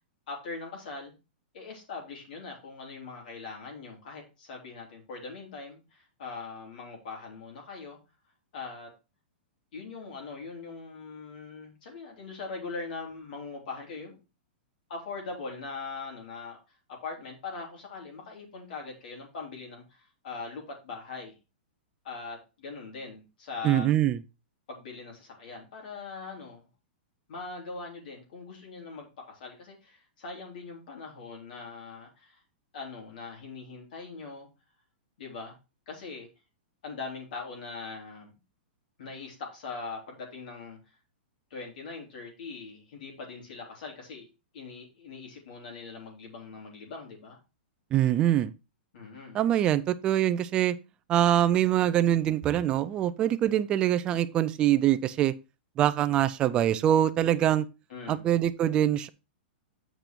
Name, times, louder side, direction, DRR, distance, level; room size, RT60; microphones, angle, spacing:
voice 1, 0.3-1.1 1.5-8.0 8.5-8.9 9.7-14.2 14.9-16.6 16.9-21.4 22.0-23.9 24.7-26.6 27.3-32.4 32.7-34.5 35.2-35.6 35.9-36.3 36.8-38.4 39.0-40.8 41.5-44.3 44.5-47.4 48.9-49.4 57.9-58.2, left 4 dB, 55° left, 3.2 m, -41 dB
voice 2, 23.6-24.2 47.9-48.5 49.3-50.8 51.1-55.3 55.8-57.7 58.1-59.1, right 11 dB, 15° right, 0.4 m, -24 dB
8.1 x 5.2 x 4.4 m
supercardioid pair, 175°, 6 cm